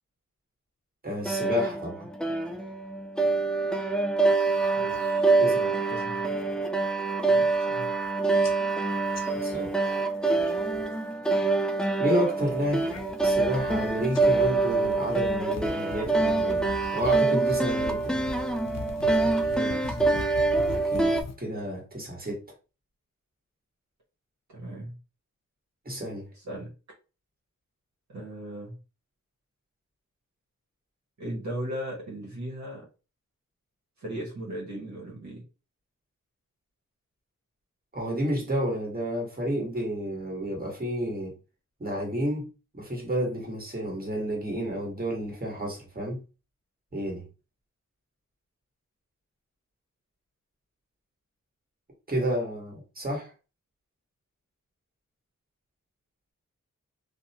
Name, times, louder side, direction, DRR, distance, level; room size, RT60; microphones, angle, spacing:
voice 1, 1.0-2.1 5.4-5.7 9.4-9.7 12.0-16.6 16.9-18.3 20.7-22.4 25.8-26.3 37.9-41.3 41.8-42.5 42.7-46.2 46.9-47.2 52.1-53.3, equal, 30° right, 1.5 m, -31 dB
sound 1, 1.3-21.2, right 3 dB, ahead, 0.4 m, -25 dB
sound 2, 4.3-5.1 5.5-5.9 6.3-6.7 7.1-7.2 7.4-8.1 8.4-11.0 11.3-11.8 12.3-21.4, left 3 dB, 55° left, 0.6 m, -42 dB
voice 2, 4.7-6.3 7.3-7.9 19.1-20.3 24.5-25.0 26.3-26.7 28.1-28.8 31.2-32.9 34.0-35.4, right 1 dB, 60° right, 1.1 m, -38 dB
2.7 x 2.1 x 2.7 m
cardioid pair, 50°, 32 cm